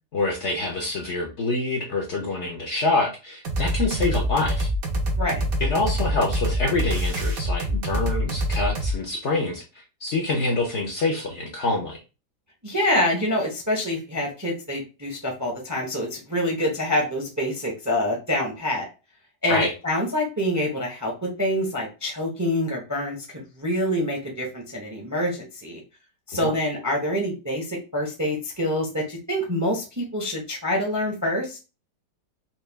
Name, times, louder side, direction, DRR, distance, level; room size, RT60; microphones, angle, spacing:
voice 1, 0.1-4.7 5.6-12.0 19.5-19.7 26.4-26.5, left 2 dB, 55° left, 1 dB, 0.8 m, -26 dB
sound 1, 3.4-8.9, equal, 60° right, 1.3 m, -25 dB
voice 2, 12.6-18.8 19.4-25.8 26.3-31.6, left 1 dB, 15° right, 0 dB, 0.6 m, -26 dB
4.3 x 2.4 x 3.4 m, 0.31 s
omnidirectional pair, 1.8 m